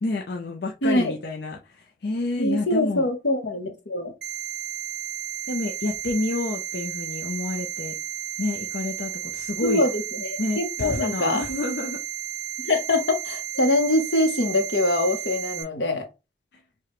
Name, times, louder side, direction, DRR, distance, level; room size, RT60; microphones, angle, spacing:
voice 1, 0.0-3.1 5.5-7.9 8.4-9.8 10.4-12.0, left 2 dB, 65° left, 0.5 m, -29 dB
voice 2, 0.8-1.1 2.4-4.1 9.6-11.4 12.6-16.1, left 1 dB, 90° left, 0.9 m, -24 dB
sound 1, 4.2-15.6, right 10 dB, 65° right, 0.8 m, -33 dB
4.8 x 2.2 x 3.0 m
head